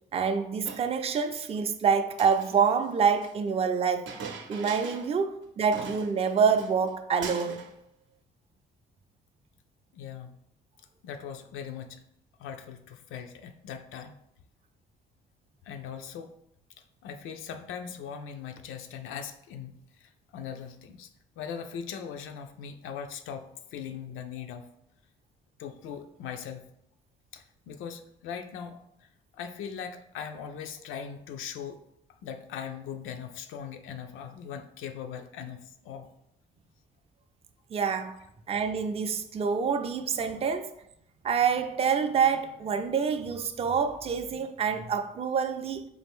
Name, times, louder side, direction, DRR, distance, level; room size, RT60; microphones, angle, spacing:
voice 1, 0.1-4.1 4.5-7.6 37.7-38.2 38.5-40.7 41.2-45.8, right 6 dB, 30° right, 0.4 m, -27 dB
Chink clink, 0.6-1.5 2.1-3.3 4.1-5.2 5.4-5.5 5.7-6.9 7.2-7.7, right 5 dB, 70° right, 0.6 m, -41 dB
voice 2, 9.9-10.4 10.8-12.0 12.4-14.1 15.6-16.3 17.0-21.1 21.4-24.7 25.6-26.7 27.3-31.8 32.2-36.1, left 7 dB, 90° left, 0.4 m, -40 dB
4.1 x 2.5 x 3.5 m
cardioid pair, 90°, 20 cm